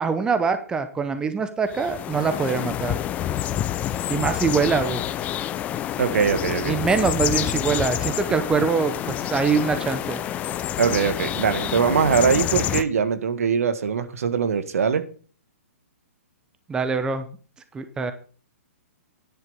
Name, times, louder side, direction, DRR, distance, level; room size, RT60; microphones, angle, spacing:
voice 1, 0.0-3.0 4.1-5.0 6.6-10.2 16.7-17.2 17.7-18.1, right 5 dB, 10° right, 10 dB, 0.9 m, -23 dB
sound 1, 1.7-12.8, left 11 dB, 20° left, 0.5 m, -28 dB
voice 2, 6.0-6.8 10.8-15.0, right 6 dB, 70° right, 11 dB, 1.6 m, -22 dB
10.0 x 7.7 x 5.4 m, 0.40 s
hypercardioid pair, 145°, 8 cm